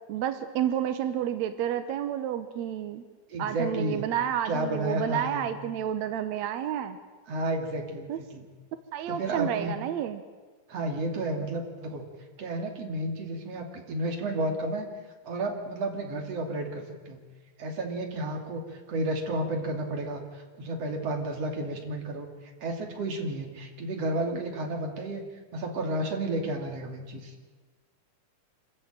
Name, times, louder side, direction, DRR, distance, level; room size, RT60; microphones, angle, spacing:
voice 1, 0.1-3.0 3.4-7.0 8.1-8.2 8.9-10.2, right 10 dB, 75° right, 9 dB, 1.6 m, -30 dB
voice 2, 3.3-4.0 4.4-5.5 7.3-8.5 9.1-9.7 10.7-12.0 12.4-14.9 15.2-17.2 17.6-25.2 25.5-27.3, right 1 dB, 45° right, 2 dB, 3.5 m, -32 dB
26.5 x 14.0 x 8.9 m, 1.4 s
omnidirectional pair, 4.4 m